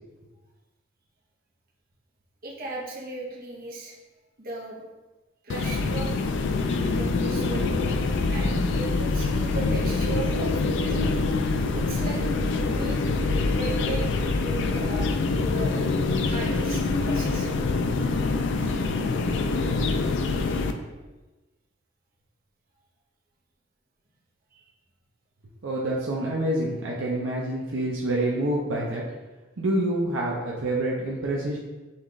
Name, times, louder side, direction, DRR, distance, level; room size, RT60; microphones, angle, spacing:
voice 1, 2.4-4.0 4.4-4.8 5.4-6.4 6.8-7.7 8.3-11.2 11.7-15.1 15.3-15.8 16.3-17.5 24.5-24.6, right 3 dB, 50° right, -3 dB, 0.9 m, -37 dB
sound 1, 5.5-20.7, left 3 dB, 65° left, 0.4 m, -25 dB
voice 2, 25.6-29.0 29.6-31.6, right 1 dB, 70° right, -3 dB, 0.6 m, -27 dB
5.5 x 2.4 x 3.2 m, 1.1 s
head